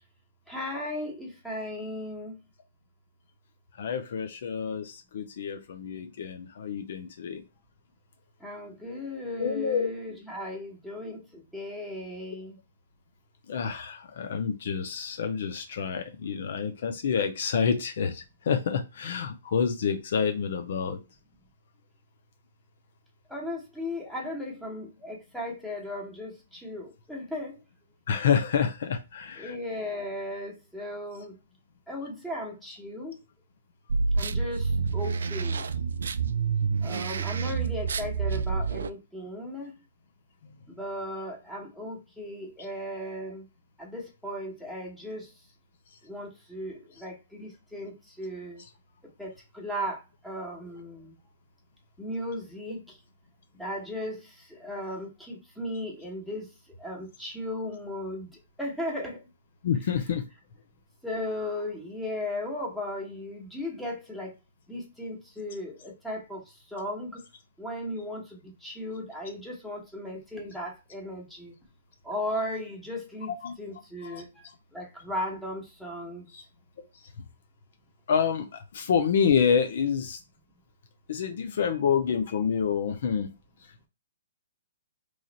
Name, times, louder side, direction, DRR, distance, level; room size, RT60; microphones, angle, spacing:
voice 1, 0.5-2.3 8.4-12.6 23.3-27.6 29.4-31.4 31.9-33.1 34.2-35.6 36.8-39.7 40.7-43.4 43.8-45.3 46.0-48.6 49.2-51.2 52.0-53.0 53.6-56.5 56.8-58.3 58.6-59.2 61.0-64.3 64.7-66.4 66.7-67.2 67.6-71.5 72.0-73.3 73.6-74.3 74.7-76.3, left 1 dB, ahead, -3 dB, 1.2 m, -36 dB
voice 2, 3.8-7.4 9.4-9.9 13.5-21.0 28.1-29.5 59.6-60.2 73.4-73.5 74.0-74.2 76.3-76.4 78.1-80.2 81.1-83.3, left 7 dB, 60° left, 7 dB, 0.5 m, -28 dB
sound 1, 33.9-38.9, right 5 dB, 75° right, 0.3 m, -28 dB
3.1 x 2.4 x 4.0 m, 0.26 s
hypercardioid pair, 145°, 0 cm